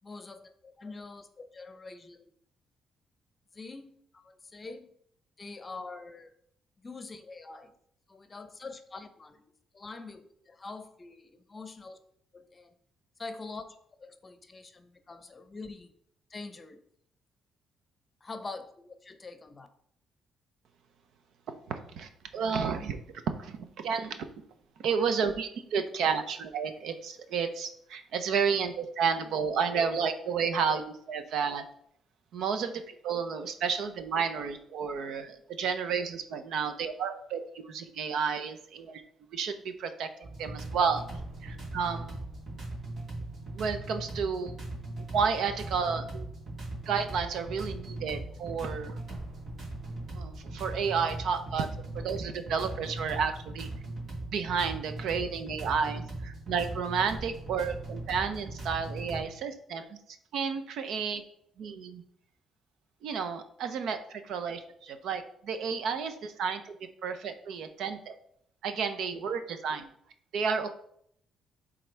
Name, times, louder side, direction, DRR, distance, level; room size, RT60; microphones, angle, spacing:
voice 1, 0.0-2.3 3.5-4.9 5.4-6.3 6.8-7.8 8.1-12.0 12.3-12.7 13.2-13.6 14.0-15.9 16.3-16.8 18.2-19.7, left 3 dB, 30° left, 9 dB, 0.8 m, -44 dB
voice 2, 21.7-23.0 23.4-24.3 24.8-31.6 32.3-39.0 39.3-41.0 41.4-42.2 43.5-44.5 45.0-46.3 46.9-49.0 50.1-53.7 54.3-60.0 60.3-61.2 61.6-62.0 63.0-66.7 67.0-68.1 68.6-69.9 70.3-70.7, right 6 dB, 75° right, 8 dB, 0.7 m, -31 dB
sound 1, 40.2-59.2, right 2 dB, 55° right, 2.6 m, -39 dB
10.5 x 3.8 x 3.4 m, 0.68 s
cardioid pair, 90°, 0 cm